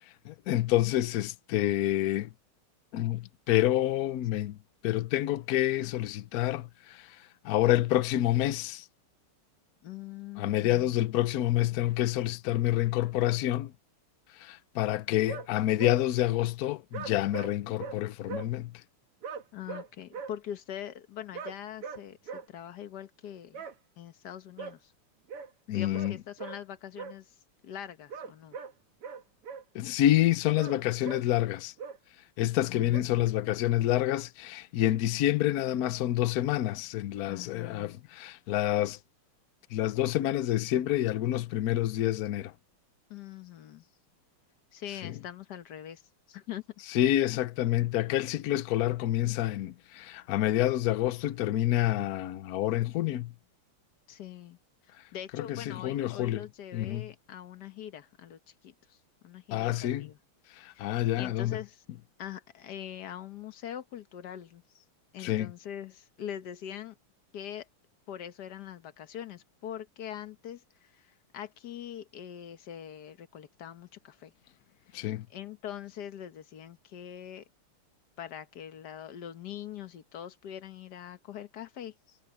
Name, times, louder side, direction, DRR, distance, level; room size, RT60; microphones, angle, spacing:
voice 1, 0.3-2.3 2.9-4.6 4.8-7.1 7.4-8.8 10.4-13.7 14.4-18.7 25.7-26.2 29.7-31.7 32.4-39.0 39.7-42.5 45.0-45.1 46.9-53.3 55.4-56.4 56.7-57.1 59.5-60.1 60.6-61.6 65.2-65.5 74.9-75.3, left 14 dB, 90° left, 0.8 m, -28 dB
voice 2, 9.8-11.0 19.5-23.6 24.0-24.9 25.7-27.4 27.6-28.6 32.7-33.3 37.2-38.0 43.1-43.9 44.7-46.0 46.3-46.6 54.1-54.6 54.8-59.0 59.2-60.2 60.7-61.8 62.2-64.8 65.1-67.0 67.3-67.7 68.1-74.3 74.9-75.0 75.3-77.4 78.2-82.2, left 10 dB, 55° left, 1.4 m, -43 dB
sound 1, 15.3-15.5 15.8-16.0 16.9-17.5 17.8-18.0 18.3-18.5 19.2-20.3 21.3-21.5 21.8-22.0 22.3-22.5 23.5-23.7 24.6-24.7 25.3-25.5 25.9-26.1 26.4-26.6 27.0-27.2 28.1-28.7 29.0-29.6 30.6-30.8 31.0-31.2 31.8-32.0 32.9-33.0, right 6 dB, 90° right, 2.8 m, -40 dB
omnidirectional pair, 2.4 m